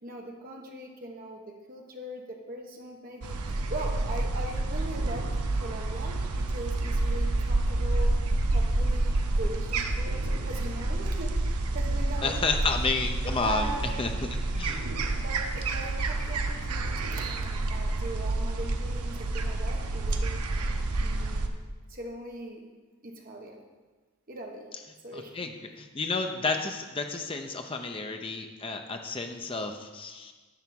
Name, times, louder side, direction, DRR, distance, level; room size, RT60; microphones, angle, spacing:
voice 1, 0.0-5.3 5.5-8.2 8.5-12.4 13.4-13.9 15.2-20.4 21.0-21.5 21.9-22.6 23.0-23.6 24.3-24.6 25.0-25.4, right 2 dB, 40° right, 0 dB, 1.1 m, -40 dB
sound 1, 3.2-21.5, right 2 dB, 90° right, 0.7 m, -29 dB
voice 2, 12.2-13.7 14.0-14.1 14.5-14.8 25.1-30.3, left 4 dB, 25° left, 5 dB, 0.6 m, -31 dB
10.5 x 3.5 x 7.0 m, 1.3 s
head